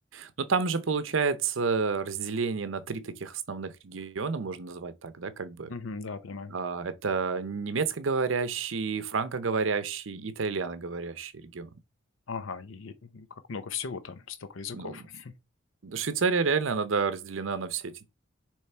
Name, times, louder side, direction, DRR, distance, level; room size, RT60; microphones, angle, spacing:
voice 1, 0.1-5.7 6.5-11.7 14.7-15.0 15.8-18.0, right 5 dB, 75° right, 0.6 m, -30 dB
voice 2, 5.7-6.5 12.3-15.3, left 5 dB, 80° left, 0.6 m, -38 dB
6.7 x 3.2 x 4.4 m
head